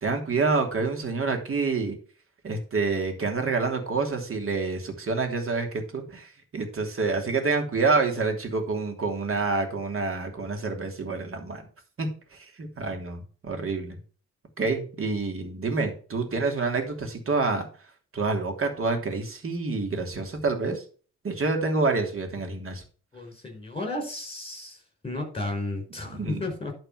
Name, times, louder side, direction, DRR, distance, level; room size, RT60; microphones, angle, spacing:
voice 1, 0.0-2.0 2.4-11.6 12.0-14.0 14.6-17.7 18.1-20.8 21.2-22.8 26.1-26.5, right 3 dB, 40° right, 4 dB, 3.0 m, -27 dB
voice 2, 23.1-24.8 25.0-26.7, left 2 dB, 15° left, 3 dB, 5.3 m, -33 dB
11.5 x 4.4 x 5.9 m, 0.40 s
hypercardioid pair, 50°, 33 cm